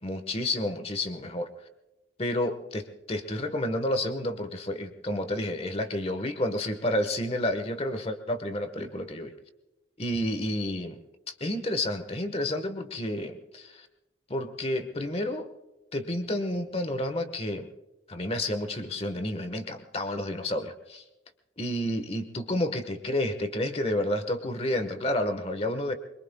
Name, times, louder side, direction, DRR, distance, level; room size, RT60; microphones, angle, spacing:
voice 1, 0.0-1.5 2.2-2.8 3.1-9.3 10.0-11.0 11.3-13.9 14.3-15.5 15.9-17.7 18.1-21.0 21.6-25.9, left 1 dB, 35° left, 8 dB, 1.4 m, -30 dB
25.5 x 23.5 x 2.3 m, 1.0 s
head